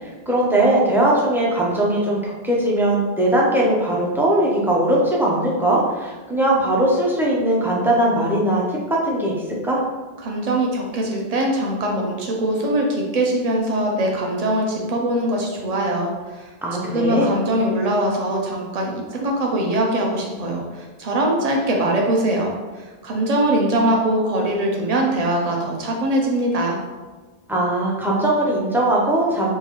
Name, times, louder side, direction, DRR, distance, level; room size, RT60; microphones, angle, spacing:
voice 1, 0.0-8.8 9.0-9.8 16.6-17.3 27.5-29.6, right 1 dB, 5° right, -4 dB, 0.4 m, -20 dB
voice 2, 10.2-16.5 16.9-22.6 23.0-26.8, right 1 dB, 45° right, 0 dB, 0.6 m, -22 dB
3.7 x 2.5 x 3.0 m, 1.3 s
omnidirectional pair, 1.1 m